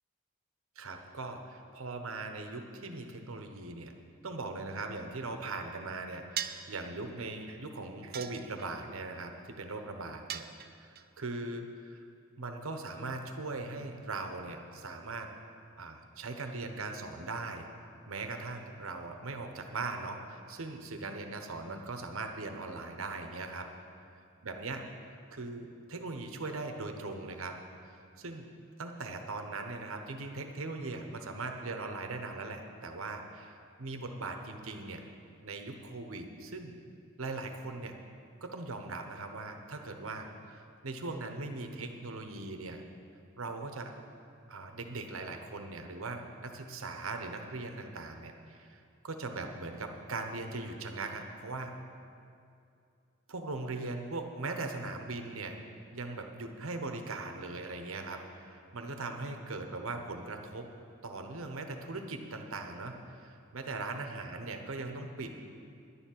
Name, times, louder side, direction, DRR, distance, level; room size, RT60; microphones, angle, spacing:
voice 1, 0.8-3.9 4.2-10.4 10.7-12.0 12.4-15.3 15.8-17.7 18.1-23.7 24.4-24.9 25.3-27.6 27.8-28.5 28.8-35.1 35.4-36.8 37.2-37.9 38.4-42.8 43.4-43.9 44.5-51.7 53.3-55.6 55.9-60.7 61.0-65.5, right 3 dB, 75° right, 5 dB, 1.0 m, -40 dB
sound 1, 6.4-6.8 8.1-8.9 10.3-11.0, right 10 dB, 45° right, 0.5 m, -39 dB
11.0 x 7.1 x 9.1 m, 2.5 s
head